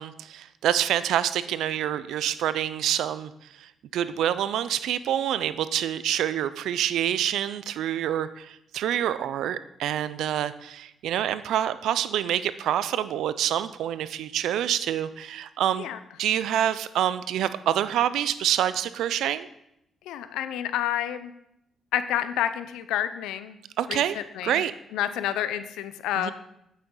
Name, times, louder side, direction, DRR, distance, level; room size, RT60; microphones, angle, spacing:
voice 1, 0.0-3.3 3.6-15.9 16.2-19.5 23.8-24.2 24.4-24.7 26.2-26.3, right 11 dB, 80° right, 14 dB, 0.4 m, -27 dB
voice 2, 20.1-21.3 21.9-23.6 23.9-24.6 24.9-26.3, left 11 dB, 90° left, 12 dB, 0.5 m, -29 dB
8.6 x 6.9 x 3.8 m, 0.80 s
supercardioid pair, 65°, 0 cm